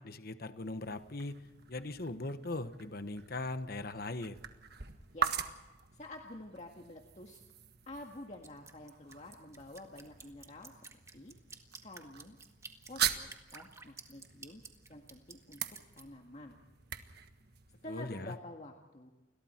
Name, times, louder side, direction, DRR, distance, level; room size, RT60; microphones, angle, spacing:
voice 1, 0.0-1.4 1.7-4.4 17.9-18.3, left 2 dB, 50° left, 10 dB, 1.2 m, -40 dB
sound 1, 0.5-18.4, right 8 dB, 55° right, 1.5 m, -43 dB
voice 2, 4.9-5.4 5.9-7.4 7.9-11.3 11.8-12.4 12.8-14.6 14.9-15.6 15.9-16.6 17.8-19.1, left 1 dB, 35° left, 2 dB, 1.8 m, -49 dB
Drip, 8.4-16.0, right 4 dB, 15° right, 1.8 m, -52 dB
30.0 x 22.0 x 4.5 m, 1.1 s
head